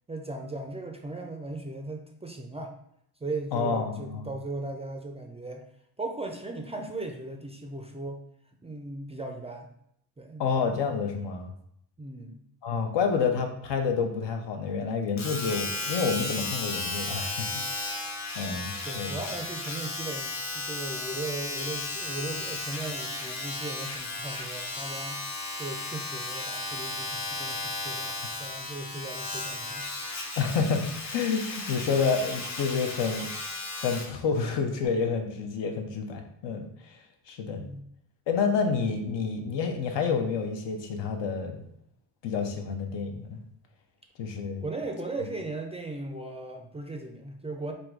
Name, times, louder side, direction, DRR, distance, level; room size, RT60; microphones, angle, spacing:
voice 1, 0.1-2.7 3.2-5.7 6.0-8.2 8.6-9.7 10.2-10.5 12.0-12.4 18.8-25.2 25.6-29.9 37.6-37.9 44.6-47.7, right 2 dB, 15° right, 3 dB, 0.3 m, -37 dB
voice 2, 3.5-4.3 10.4-11.5 12.6-18.1 18.4-19.2 30.4-37.0 37.3-37.6 38.3-41.7 42.2-43.4 44.2-44.6, left 5 dB, 80° left, 4 dB, 0.9 m, -29 dB
Domestic sounds home sounds, 15.2-34.2 34.8-34.9, left 2 dB, 40° left, 0.8 m, -35 dB
3.6 x 2.6 x 4.6 m, 0.73 s
cardioid pair, 125°, 43 cm